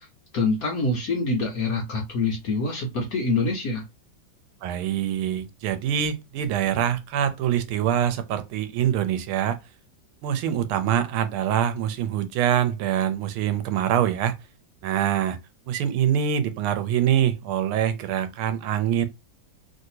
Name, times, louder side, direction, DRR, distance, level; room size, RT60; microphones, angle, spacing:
voice 1, 0.3-3.8, left 3 dB, 65° left, 0.9 m, -25 dB
voice 2, 4.6-9.6 10.2-14.4 14.8-15.4 15.7-19.1, right 10 dB, 90° right, 1.5 m, -24 dB
3.2 x 2.7 x 2.7 m
omnidirectional pair, 2.3 m